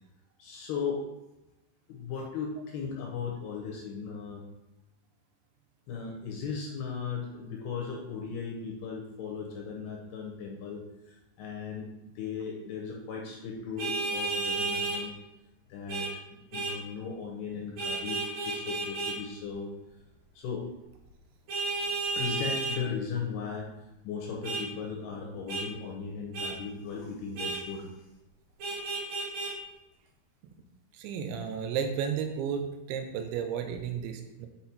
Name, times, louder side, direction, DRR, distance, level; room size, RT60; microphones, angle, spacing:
voice 1, 0.4-1.0 1.9-4.4 5.9-11.9 12.2-15.1 15.7-19.7 20.4-20.7 22.2-23.7 24.0-28.0, left 6 dB, 75° left, 0 dB, 2.5 m, -37 dB
Vehicle horn car horn honking, 13.8-15.0 15.9-16.1 16.5-16.8 17.8-19.2 21.5-22.8 24.4-24.6 25.5-25.6 26.3-26.5 27.4-27.6 28.6-29.5, right 3 dB, 60° right, 3.6 m, -32 dB
voice 2, 30.9-32.6 32.9-34.5, right 7 dB, 85° right, 5 dB, 3.0 m, -33 dB
8.4 x 4.0 x 4.2 m, 0.93 s
omnidirectional pair, 5.2 m